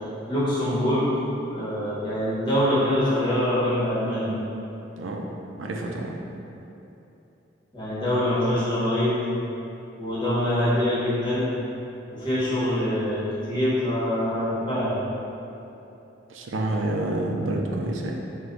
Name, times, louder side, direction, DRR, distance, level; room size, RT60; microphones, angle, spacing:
voice 1, 0.3-1.1 1.5-4.3 7.7-9.2 10.0-11.5 12.1-15.0, left 1 dB, 25° left, -10 dB, 1.2 m, -24 dB
voice 2, 5.6-6.1 16.3-18.1, right 1 dB, 85° right, 0 dB, 0.5 m, -28 dB
4.9 x 2.2 x 3.9 m, 2.9 s
head